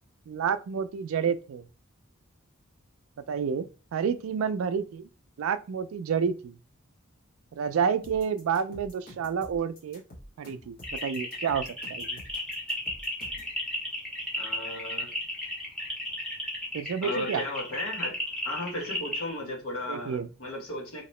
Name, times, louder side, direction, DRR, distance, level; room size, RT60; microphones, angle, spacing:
voice 1, 0.3-1.7 3.3-5.1 5.4-6.6 7.5-10.0 10.4-10.8 11.0-12.2 16.7-17.4 19.9-20.3, right 7 dB, 70° right, 0.3 m, -29 dB
sound 1, 8.0-13.5, left 1 dB, 45° left, 1.2 m, -48 dB
sound 2, 10.8-19.3, equal, 5° left, 1.0 m, -34 dB
voice 2, 14.4-15.1 17.0-18.2 18.4-21.0, left 1 dB, 80° left, 1.0 m, -35 dB
2.9 x 2.8 x 3.1 m
head